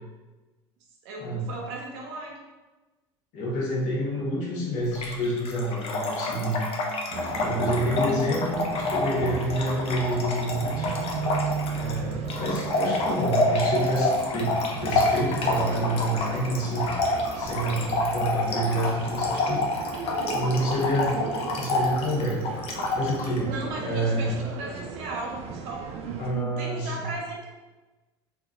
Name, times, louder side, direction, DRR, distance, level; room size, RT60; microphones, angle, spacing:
voice 1, 1.0-2.4 23.4-27.5, right 3 dB, 65° right, -1 dB, 0.9 m, -37 dB
voice 2, 3.3-6.6 7.4-11.2 11.5-19.6 20.3-21.1 21.5-22.4 22.9-24.5 26.2-27.1, right 1 dB, 60° left, -4 dB, 1.2 m, -28 dB
Trickle dribble / Fill (with liquid), 4.9-23.4, left 2 dB, 45° left, 0.7 m, -28 dB
sound 1, 7.1-26.3, right 5 dB, 45° right, 0.5 m, -36 dB
3.7 x 3.0 x 2.4 m, 1.2 s
hypercardioid pair, 70°, 14 cm